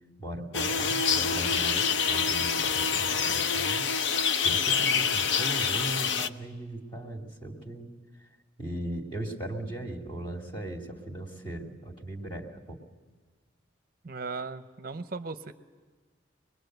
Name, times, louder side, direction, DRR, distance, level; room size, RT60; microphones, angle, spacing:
voice 1, 0.2-3.8 4.4-7.9 8.6-12.8, right 1 dB, 25° left, 1 dB, 2.5 m, -38 dB
sound 1, 0.5-6.3, left 6 dB, 70° left, 0.7 m, -26 dB
voice 2, 14.0-15.5, right 3 dB, 50° right, 9 dB, 0.6 m, -37 dB
25.0 x 21.0 x 7.9 m, 1.4 s
head